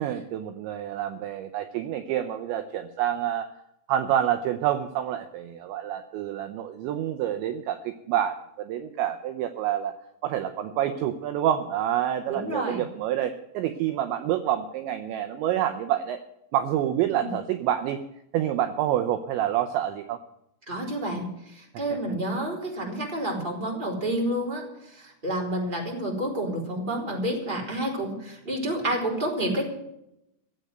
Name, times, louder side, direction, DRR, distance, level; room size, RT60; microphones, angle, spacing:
voice 1, 0.0-3.5 3.9-10.0 10.2-16.2 16.5-18.0 18.3-20.2 21.9-22.0, right 11 dB, 80° right, 8 dB, 2.8 m, -27 dB
voice 2, 12.3-12.8 17.1-17.3 20.7-21.2 21.5-24.6 24.9-29.7, right 1 dB, 10° right, -1 dB, 3.2 m, -29 dB
16.0 x 8.1 x 9.0 m, 0.83 s
omnidirectional pair, 5.8 m